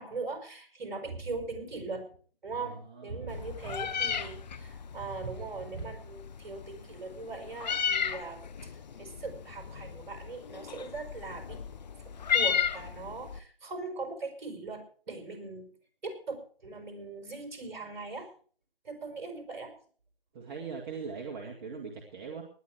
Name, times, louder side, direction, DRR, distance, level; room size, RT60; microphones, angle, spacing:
voice 1, 0.0-2.1 2.4-11.6 12.0-15.7 16.0-18.3 18.8-19.7, right 3 dB, 50° right, 5 dB, 5.7 m, -40 dB
voice 2, 2.6-3.3 20.3-22.4, right 5 dB, 25° right, -1 dB, 2.2 m, -41 dB
Meow, 3.3-13.4, left 7 dB, 45° left, 1.1 m, -34 dB
20.0 x 10.0 x 4.8 m, 0.43 s
figure-of-eight pair, 150°, 30 cm